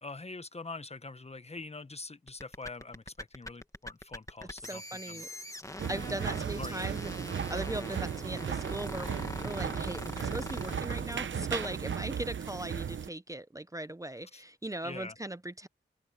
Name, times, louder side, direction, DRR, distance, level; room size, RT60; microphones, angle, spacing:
voice 1, 0.0-5.2 6.1-6.9 14.3-14.4 14.8-15.1, left 3 dB, 35° left, 1.1 m, -44 dB
sound 1, 2.3-12.0, left 1 dB, 15° left, 2.2 m, -43 dB
voice 2, 4.6-5.3 5.9-15.7, right 1 dB, 15° right, 0.7 m, -39 dB
sound 2, 5.8-13.1, right 7 dB, 80° right, 0.9 m, -36 dB
open air
cardioid pair, 50°, 20 cm